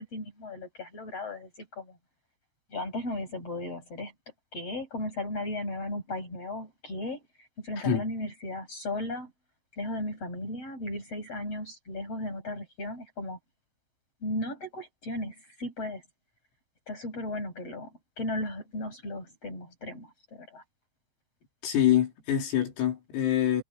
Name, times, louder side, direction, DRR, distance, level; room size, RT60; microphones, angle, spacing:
voice 1, 0.0-2.0 2.7-4.1 4.5-7.2 7.6-9.3 9.7-13.4 14.2-16.0 16.9-20.6, left 1 dB, 30° left, 8.8 m, -36 dB
voice 2, 21.6-23.6, left 10 dB, 80° left, 7.2 m, -25 dB
omnidirectional pair, 5.9 m